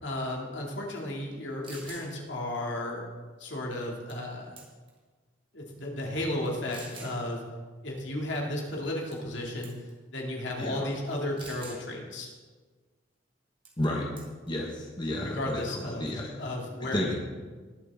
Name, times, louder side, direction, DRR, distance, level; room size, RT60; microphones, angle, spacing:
voice 1, 0.0-3.0 3.4-4.6 5.5-7.4 7.8-9.7 10.1-12.3 15.2-17.1, left 1 dB, 70° left, -1 dB, 2.5 m, -34 dB
sound 1, 1.3-1.4 1.6-2.1 4.1-4.3 4.6-5.0 5.7-5.8 6.7-7.2 9.1-9.4 9.6-9.9 11.4-11.8 13.7-13.9 14.2-14.5, right 3 dB, 25° right, 2.0 m, -46 dB
voice 2, 13.8-14.1 14.5-15.6 15.9-16.3 16.8-17.1, left 1 dB, 25° left, -1 dB, 1.2 m, -31 dB
20.0 x 7.7 x 3.7 m, 1.4 s
head